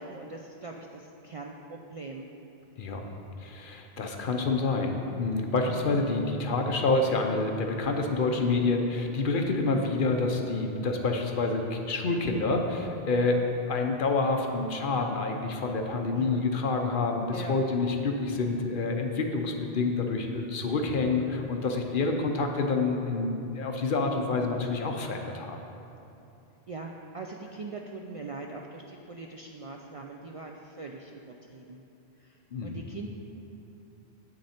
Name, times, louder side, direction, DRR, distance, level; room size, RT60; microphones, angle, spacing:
voice 1, 0.0-2.3 16.1-16.4 17.3-17.5 26.7-31.8 32.2-32.3 32.6-33.1, right 3 dB, 55° right, 1 dB, 0.4 m, -41 dB
voice 2, 2.8-3.1 3.4-25.6 32.5-32.8, left 3 dB, 60° left, 3 dB, 0.8 m, -28 dB
8.6 x 6.3 x 4.3 m, 2.9 s
omnidirectional pair, 1.0 m